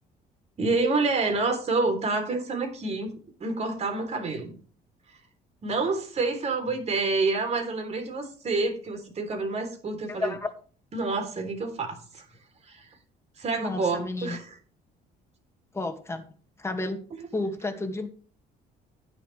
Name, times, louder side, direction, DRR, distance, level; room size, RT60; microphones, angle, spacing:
voice 1, 0.6-3.1 3.4-4.6 5.6-10.4 10.9-12.3 12.7-12.9 13.4-14.5, right 3 dB, 40° right, 6 dB, 3.4 m, -28 dB
voice 2, 10.1-10.5 13.6-14.4 15.7-16.3 16.6-17.0 17.3-18.1, left 2 dB, 15° left, 5 dB, 2.1 m, -31 dB
11.0 x 9.8 x 3.3 m, 0.40 s
cardioid pair, 110°, 17 cm